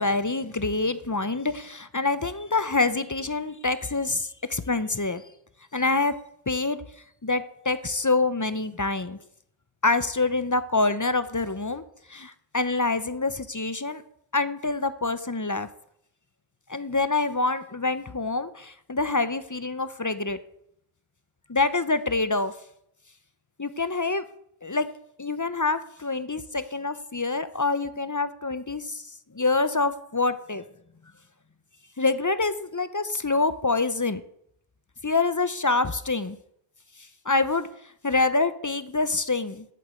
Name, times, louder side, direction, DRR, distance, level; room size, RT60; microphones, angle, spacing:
voice 1, 0.0-5.2 5.7-6.1 6.5-6.8 7.2-9.2 9.8-11.8 12.1-14.0 14.3-15.7 16.7-20.4 21.5-22.5 23.6-24.2 24.6-24.9 25.2-29.0 29.3-30.6 32.0-34.2 35.0-36.4 37.3-37.7 38.0-39.7, left 3 dB, 25° left, 13 dB, 0.4 m, -26 dB
8.1 x 7.7 x 8.3 m, 0.72 s
omnidirectional pair, 1.0 m